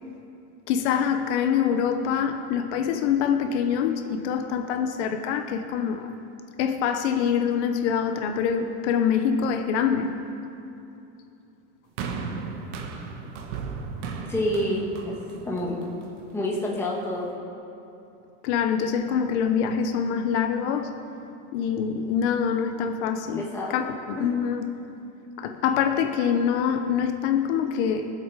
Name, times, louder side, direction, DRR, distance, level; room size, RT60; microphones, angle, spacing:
voice 1, 0.7-6.1 6.6-10.1 18.4-20.9 21.5-24.7 25.4-28.1, left 7 dB, 65° left, 7 dB, 1.0 m, -25 dB
sound 1, 12.0-16.3 17.1-17.2, right 5 dB, 75° right, 1.6 m, -35 dB
voice 2, 14.3-15.2 15.4-15.8 16.3-17.3 23.4-23.8, left 1 dB, 5° left, -3 dB, 1.6 m, -28 dB
22.0 x 8.0 x 4.9 m, 2.8 s
supercardioid pair, 170°, 36 cm